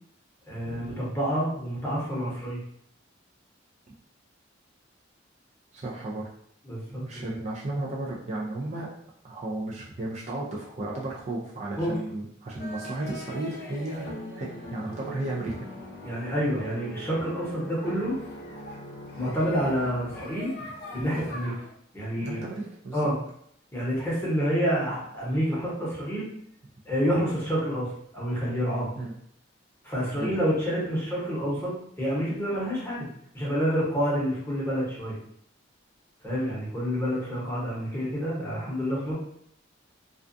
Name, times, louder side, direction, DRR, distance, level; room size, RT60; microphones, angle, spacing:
voice 1, 0.5-2.6 6.6-7.3 11.8-12.0 16.0-18.2 19.2-20.5 20.9-21.5 21.9-22.4 22.9-23.2 23.7-26.3 26.9-27.9 28.1-28.9 29.8-33.1 33.3-35.2 36.2-39.1, equal, 15° left, -7 dB, 0.9 m, -28 dB
voice 2, 5.7-6.3 7.0-8.9 9.2-14.1 14.3-15.6 22.2-23.1 29.0-29.1 30.1-30.3, right 2 dB, 35° right, -4 dB, 0.4 m, -34 dB
sound 1, 12.6-21.7, equal, 55° left, 0.6 m, -41 dB
2.4 x 2.2 x 2.5 m, 0.67 s
head